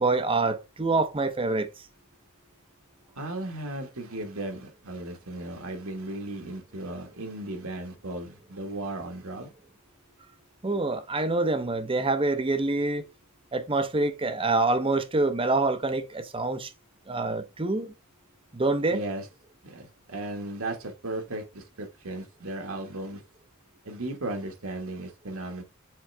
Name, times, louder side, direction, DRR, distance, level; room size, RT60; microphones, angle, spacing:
voice 1, 0.0-1.7 10.6-13.0 13.5-16.7 17.1-17.9 18.5-19.0, right 3 dB, 25° right, 0.7 m, -26 dB
voice 2, 3.2-9.5 18.9-19.2 19.6-23.2 23.8-25.6, right 2 dB, 70° right, 1.5 m, -36 dB
7.5 x 3.8 x 3.3 m
head